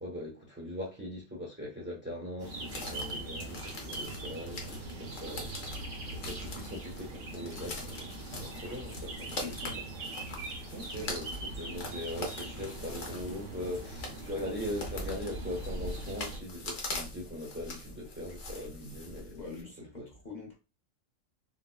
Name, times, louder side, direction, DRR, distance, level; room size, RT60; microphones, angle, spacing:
voice 1, 0.0-5.5 6.1-9.3 9.6-9.7 10.7-19.4 20.0-20.1, left 1 dB, 10° right, 0.6 m, -40 dB
sound 1, 2.4-16.4, right 2 dB, 70° right, 1.2 m, -41 dB
sound 2, 2.7-19.6, left 2 dB, 70° left, 1.1 m, -43 dB
voice 2, 9.3-9.8 19.3-20.6, left 4 dB, 40° left, 1.0 m, -44 dB
3.9 x 2.1 x 2.2 m
omnidirectional pair, 1.3 m